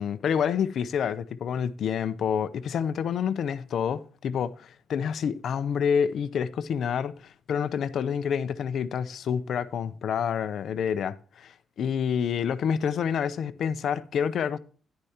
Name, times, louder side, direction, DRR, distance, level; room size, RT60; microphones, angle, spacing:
voice 1, 0.0-14.6, left 7 dB, 55° left, 0.6 m, -28 dB
10.5 x 9.9 x 2.9 m
cardioid pair, 175°, 0 cm